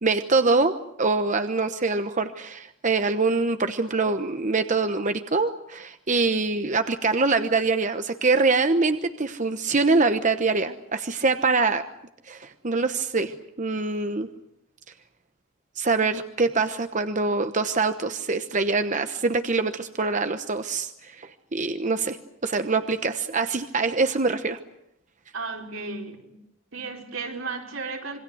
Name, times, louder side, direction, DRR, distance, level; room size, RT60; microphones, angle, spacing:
voice 1, 0.0-11.8 12.3-14.3 15.8-22.2 22.4-24.6, right 3 dB, 40° right, 9 dB, 1.0 m, -24 dB
voice 2, 25.3-26.4 26.7-28.2, right 4 dB, 85° right, 1 dB, 4.9 m, -34 dB
27.0 x 22.5 x 7.9 m, 0.76 s
head